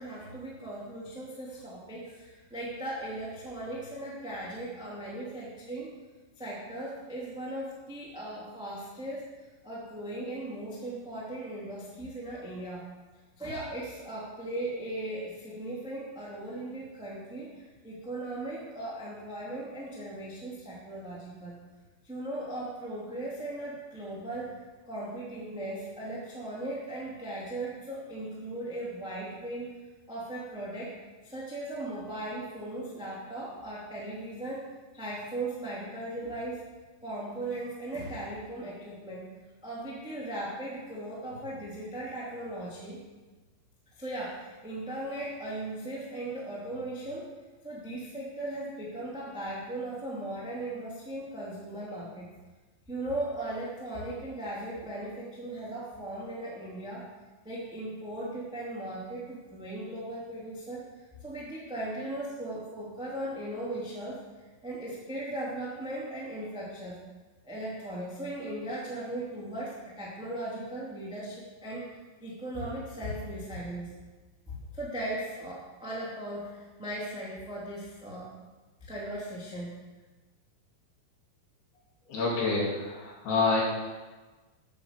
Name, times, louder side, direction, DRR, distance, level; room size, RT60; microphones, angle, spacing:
voice 1, 0.0-5.9 6.4-9.3 9.6-12.8 13.4-21.6 22.0-29.7 30.1-30.9 31.2-36.6 37.0-39.3 39.6-43.0 43.9-47.3 47.6-52.3 52.9-57.0 57.4-60.8 61.2-67.0 67.4-71.9 72.2-73.9 74.5-78.3 78.8-79.7, right 1 dB, ahead, -6 dB, 1.2 m, -38 dB
voice 2, 82.1-83.6, left 3 dB, 55° left, -4 dB, 4.0 m, -27 dB
9.6 x 8.1 x 6.8 m, 1.3 s
omnidirectional pair, 6.0 m